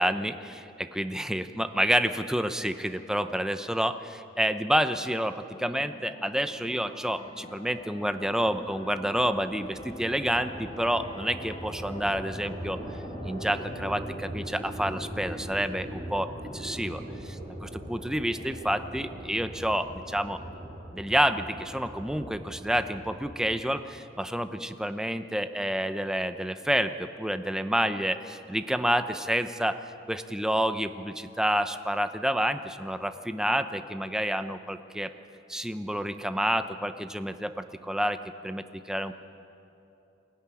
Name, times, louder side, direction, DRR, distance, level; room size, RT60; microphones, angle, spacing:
voice 1, 0.0-4.0 4.4-12.8 13.2-16.3 16.5-20.4 20.9-29.8 30.1-35.1 35.5-38.2 38.4-39.1, equal, 5° right, 9 dB, 0.7 m, -29 dB
sound 1, 5.1-14.2, left 1 dB, 30° left, 2.0 m, -46 dB
sound 2, 7.5-23.7, right 1 dB, 30° right, 6.6 m, -41 dB
22.5 x 16.0 x 9.9 m, 2.8 s
head